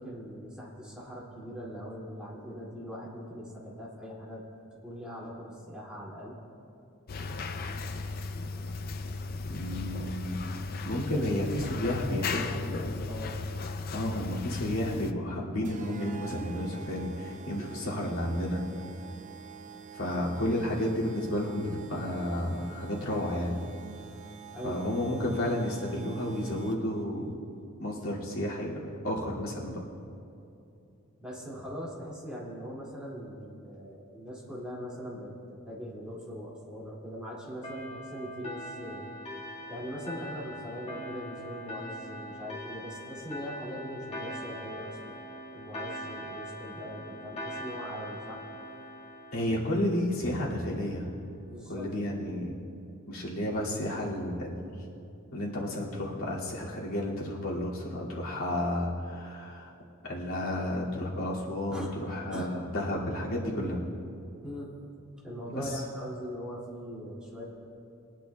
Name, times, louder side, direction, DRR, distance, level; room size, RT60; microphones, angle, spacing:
voice 1, 0.0-4.4 4.8-6.4 11.1-11.3 11.6-13.4 17.6-17.8 24.5-24.8 31.2-35.4 35.7-39.1 39.7-45.2 45.5-48.5 51.5-51.9 61.7-61.9 62.3-62.5 64.4-64.7 65.2-67.5, equal, 5° right, -6 dB, 2.4 m, -41 dB
sound 1, 7.1-15.1, left 3 dB, 45° left, 0.5 m, -36 dB
voice 2, 9.4-10.5 10.8-12.4 13.9-18.6 19.9-23.6 24.6-27.3 27.8-29.8 49.3-51.1 51.7-52.5 53.1-54.8 55.3-59.7 60.0-63.8 65.5-65.8, left 1 dB, 75° left, -5 dB, 2.4 m, -32 dB
sound 2, 15.6-27.0, right 6 dB, 35° right, 0.6 m, -47 dB
sound 3, 37.6-50.7, equal, 30° left, 1.8 m, -42 dB
22.0 x 10.5 x 2.3 m, 2.7 s
head